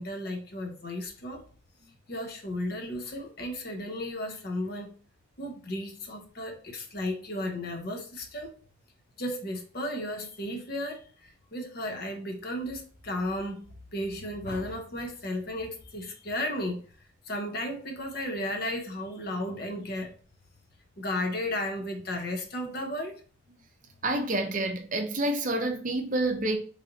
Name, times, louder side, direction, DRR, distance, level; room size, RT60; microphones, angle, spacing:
voice 1, 0.0-1.4 2.1-4.9 5.4-8.5 9.2-11.0 11.5-16.8 17.3-20.1 21.0-23.2, left 1 dB, 50° left, 0.8 m, -34 dB
voice 2, 24.0-26.6, right 2 dB, 40° right, 0.6 m, -28 dB
3.2 x 2.6 x 3.9 m
head